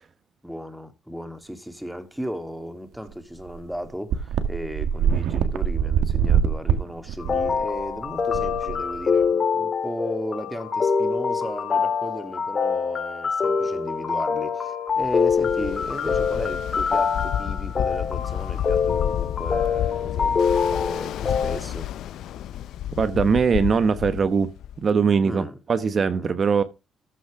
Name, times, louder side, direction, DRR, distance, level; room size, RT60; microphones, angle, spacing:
voice 1, 0.4-21.9 25.2-25.6 26.2-26.4, equal, 5° right, 2.2 m, -35 dB
sound 1, 3.1-3.2 3.5-3.6 4.1-9.3, right 8 dB, 85° right, 1.7 m, -24 dB
sound 2, 7.2-21.6, left 6 dB, 40° left, 3.3 m, -25 dB
Ocean, 15.0-24.9, left 11 dB, 80° left, 0.5 m, -31 dB
voice 2, 23.0-24.5 24.8-26.6, right 5 dB, 45° right, 1.1 m, -21 dB
14.0 x 6.3 x 4.9 m
cardioid pair, 90°, 0 cm